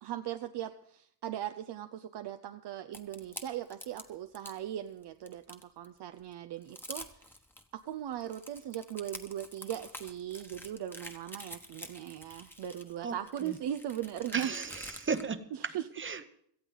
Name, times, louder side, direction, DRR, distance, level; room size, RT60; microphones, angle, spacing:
voice 1, 0.0-7.3 7.7-14.5 15.6-15.9, right 11 dB, 70° right, 8 dB, 0.7 m, -39 dB
sound 1, 2.9-4.6 5.0-5.9 6.3-6.4 6.6-7.6 8.1-15.2, left 1 dB, 5° left, 1.2 m, -47 dB
voice 2, 14.3-16.3, right 5 dB, 30° right, 11 dB, 0.9 m, -36 dB
17.5 x 14.0 x 3.9 m, 0.68 s
wide cardioid pair, 125°, 43 cm